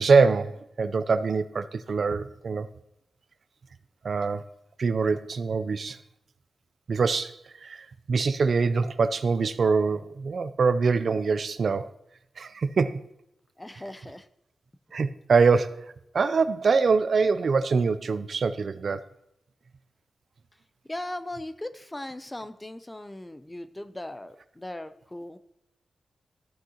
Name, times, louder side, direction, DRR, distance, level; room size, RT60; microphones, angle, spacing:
voice 1, 0.0-2.7 4.0-4.4 4.8-6.0 6.9-11.9 12.4-13.0 14.9-19.0, right 4 dB, 55° right, 0.4 m, -24 dB
voice 2, 13.6-14.3 20.9-25.4, left 1 dB, 10° left, 0.5 m, -38 dB
14.0 x 6.3 x 2.8 m
wide cardioid pair, 150°, 0 cm